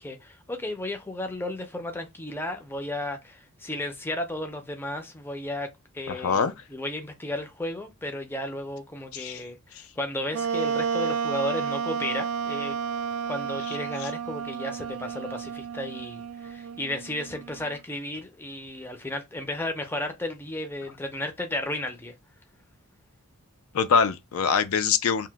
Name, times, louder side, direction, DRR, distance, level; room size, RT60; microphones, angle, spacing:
voice 1, 0.0-5.7 5.9-12.8 13.3-22.2, left 1 dB, 10° left, 0.5 m, -34 dB
voice 2, 6.1-6.5 9.1-9.4 9.8-9.9 23.7-25.3, left 6 dB, 80° left, 0.4 m, -24 dB
Wind instrument woodwind instrument, 10.3-17.8, right 6 dB, 85° right, 0.3 m, -31 dB
2.9 x 2.1 x 3.3 m
head